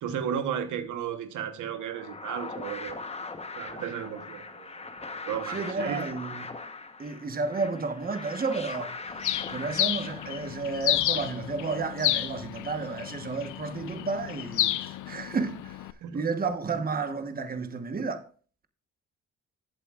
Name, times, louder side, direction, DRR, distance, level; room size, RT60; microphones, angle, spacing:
voice 1, 0.0-3.1 3.6-4.7 5.0-6.1 16.0-16.3, right 8 dB, 80° right, 1.2 m, -34 dB
sound 1, 1.7-11.1, left 3 dB, 20° left, 1.1 m, -40 dB
voice 2, 5.5-6.5 7.0-8.9 9.5-15.8 16.1-18.2, right 4 dB, 30° right, 1.2 m, -32 dB
Bird, 9.2-15.9, left 14 dB, 80° left, 0.7 m, -31 dB
14.5 x 8.3 x 2.4 m
cardioid pair, 90°, 30 cm